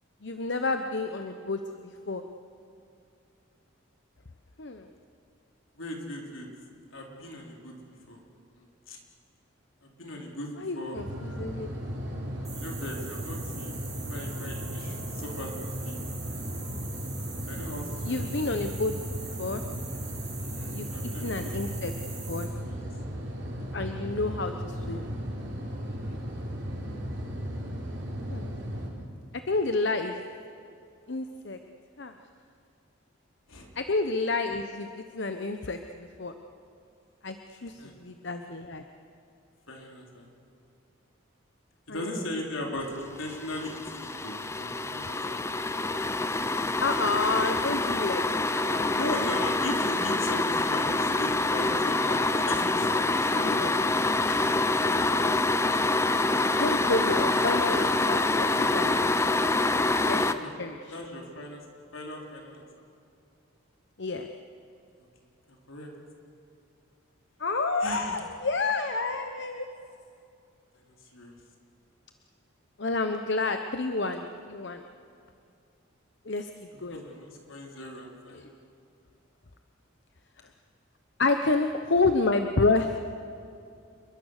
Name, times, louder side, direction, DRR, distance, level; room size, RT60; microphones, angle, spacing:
voice 1, 0.2-1.6 2.1-2.2 4.6-4.9 10.6-11.0 11.4-11.7 18.0-18.9 19.4-19.6 20.7-20.9 21.2-21.9 22.3-22.5 23.7-25.1 28.3-28.5 29.5-30.2 31.1-31.6 32.0-32.1 33.8-36.3 37.2-37.7 38.0-38.8 41.9-42.1 46.8-48.2 48.5-48.9 54.3-54.4 56.6-59.1 60.1-60.3 60.6-61.0 64.0-64.3 67.4-69.7 72.8-74.8 76.3-76.5 76.8-77.0 81.2-83.0, left 3 dB, 55° left, 7 dB, 0.9 m, -29 dB
voice 2, 5.8-6.5 6.9-7.7 8.1-8.2 8.5-9.0 9.8-11.0 12.5-13.8 14.1-16.0 17.5-18.3 20.4-21.5 21.8-21.9 22.6-22.8 25.9-26.2 33.5-33.7 37.6-37.9 39.7-40.3 41.9-45.4 48.8-54.2 60.2-60.5 60.9-61.6 61.9-62.6 65.5-65.9 67.8-68.3 70.8-71.4 76.7-78.4, left 1 dB, 75° left, 0 dB, 4.1 m, -38 dB
sound 1, 10.9-28.9, equal, 55° right, 5.1 m, -36 dB
sound 2, 12.4-22.4, right 5 dB, 15° right, 7.3 m, -43 dB
sound 3, 43.2-60.3, left 2 dB, 15° left, 0.6 m, -26 dB
27.5 x 22.5 x 6.6 m, 2.6 s
head